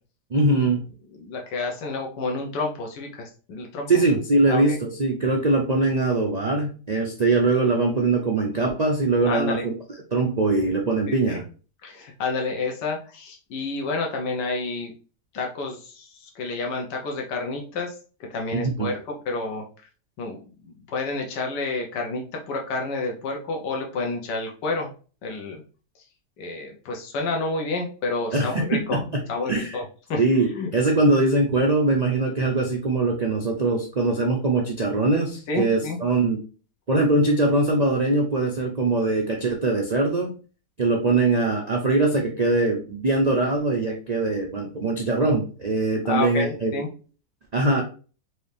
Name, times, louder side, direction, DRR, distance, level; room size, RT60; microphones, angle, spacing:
voice 1, 0.3-0.8 3.9-9.7 10.1-11.4 18.5-18.9 28.3-29.2 29.5-29.8 30.2-36.4 36.9-40.3 40.8-46.7 47.5-47.8, right 2 dB, 85° right, 0 dB, 0.3 m, -22 dB
voice 2, 1.1-3.9 4.5-4.7 9.2-9.7 11.1-11.4 11.8-14.9 15.3-17.9 18.3-19.7 20.2-24.9 25.2-25.6 26.4-29.0 29.3-30.7 35.5-36.0 46.1-46.9, left 3 dB, 85° left, 1 dB, 1.5 m, -29 dB
4.7 x 2.8 x 3.3 m, 0.37 s
omnidirectional pair, 1.8 m